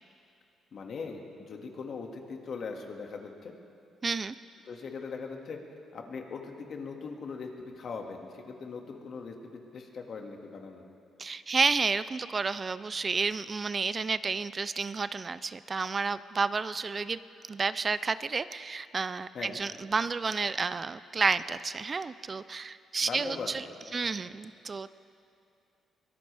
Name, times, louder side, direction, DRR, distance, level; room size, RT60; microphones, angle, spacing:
voice 1, 0.7-3.5 4.7-5.6 5.9-10.8 19.3-19.6 23.0-23.6, left 4 dB, 55° left, 2 dB, 1.9 m, -40 dB
voice 2, 4.0-4.4 11.2-17.2 17.5-23.6 23.9-24.9, right 4 dB, 35° right, 15 dB, 0.4 m, -31 dB
23.0 x 18.0 x 3.4 m, 2.6 s
cardioid pair, 90°, 0 cm